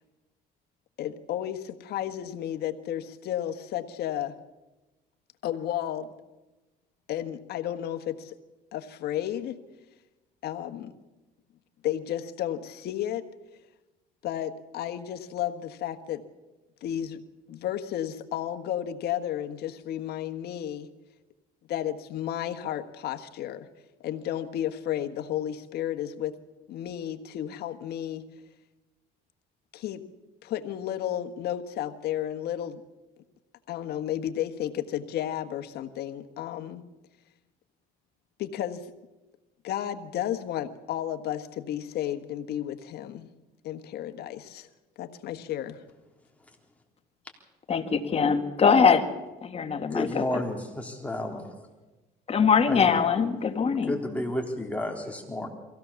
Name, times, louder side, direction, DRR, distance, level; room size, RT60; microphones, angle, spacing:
voice 1, 1.0-4.3 5.4-6.1 7.1-8.3 8.7-9.6 10.4-10.9 11.8-13.3 14.2-16.2 16.8-17.2 17.5-20.9 21.7-23.7 24.0-26.3 26.7-28.2 29.7-30.0 30.4-32.8 33.7-36.8 38.4-38.9 39.6-43.3 43.6-44.7 45.0-45.8, left 11 dB, 70° left, 8 dB, 1.4 m, -32 dB
voice 2, 47.7-49.1 49.4-50.4 52.3-53.9, left 6 dB, 35° left, 7 dB, 1.8 m, -22 dB
voice 3, 49.9-51.5 52.7-52.9 53.9-55.5, left 1 dB, 10° left, 2 dB, 3.6 m, -31 dB
23.0 x 16.5 x 7.0 m, 1.1 s
cardioid pair, 110°, 17 cm